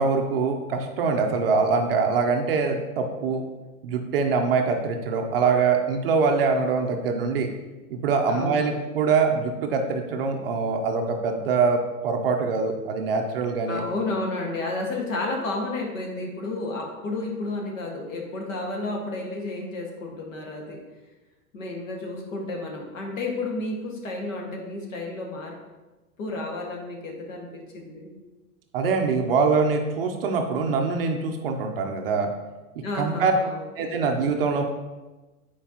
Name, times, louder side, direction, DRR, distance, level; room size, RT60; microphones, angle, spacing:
voice 1, 0.0-3.4 3.8-7.5 7.9-13.8 28.7-32.3 32.9-33.3 33.8-34.6, right 4 dB, 40° right, 3 dB, 0.6 m, -24 dB
voice 2, 8.3-8.8 13.7-20.8 21.5-25.5 26.2-28.1 32.8-34.0, left 2 dB, 55° left, 0 dB, 1.7 m, -31 dB
9.1 x 4.6 x 2.9 m, 1.2 s
hypercardioid pair, 160°, 45 cm